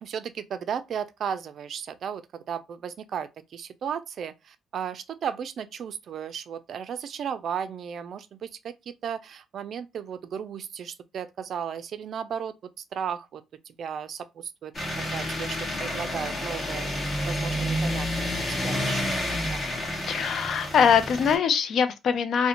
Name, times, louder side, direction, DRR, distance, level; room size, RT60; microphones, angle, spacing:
voice 1, 0.0-2.2 2.5-12.5 12.9-14.7 15.1-19.0 19.5-19.6, right 8 dB, 60° right, 0.3 m, -35 dB
sound 1, 14.7-21.4, left 1 dB, 35° left, 1.1 m, -29 dB
voice 2, 20.1-22.5, left 7 dB, 65° left, 0.4 m, -22 dB
2.5 x 2.1 x 2.8 m
cardioid pair, 90°, 0 cm